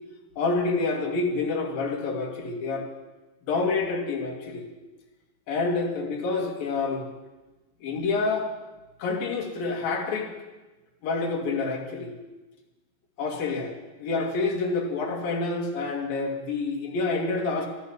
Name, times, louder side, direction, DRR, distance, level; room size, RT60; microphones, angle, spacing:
voice 1, 0.4-2.9 3.5-4.6 5.5-7.0 7.8-8.5 9.0-10.3 11.0-12.1 13.2-13.7 14.0-17.7, left 3 dB, 80° left, 1 dB, 3.9 m, -27 dB
13.5 x 11.0 x 9.6 m, 1.2 s
omnidirectional pair, 4.0 m